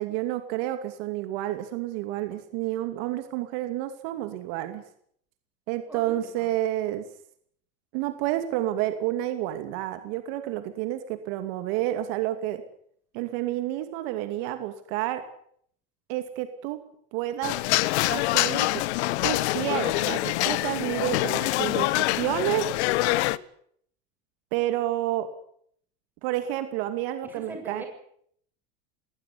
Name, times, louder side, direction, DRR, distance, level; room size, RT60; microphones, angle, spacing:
voice 1, 0.0-4.8 5.7-7.0 7.9-12.6 13.1-15.2 16.1-16.8 17.1-17.6 18.1-18.8 19.2-22.7 24.5-25.3 26.2-27.8, right 14 dB, 65° right, 9 dB, 2.6 m, -30 dB
voice 2, 5.9-6.5 23.1-23.4 27.2-27.9, right 2 dB, 5° right, 2 dB, 7.3 m, -42 dB
sound 1, 17.4-23.4, left 18 dB, 90° left, 1.1 m, -25 dB
20.0 x 19.0 x 9.6 m, 0.65 s
cardioid pair, 160°, 33 cm